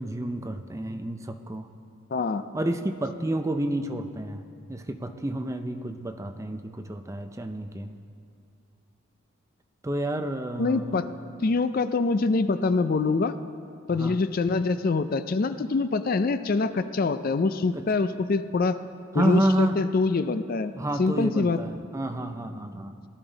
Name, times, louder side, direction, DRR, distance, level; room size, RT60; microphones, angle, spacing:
voice 1, 0.0-1.7 2.5-4.4 4.7-7.9 9.8-11.0 13.9-14.2 17.7-17.8 19.1-19.8 20.8-23.1, right 1 dB, 15° right, 7 dB, 0.5 m, -29 dB
voice 2, 2.1-2.5 10.6-11.1 11.4-13.4 13.9-18.8 19.1-20.7 21.0-21.6, left 3 dB, 45° left, 11 dB, 0.4 m, -25 dB
18.0 x 12.0 x 4.0 m, 2.3 s
head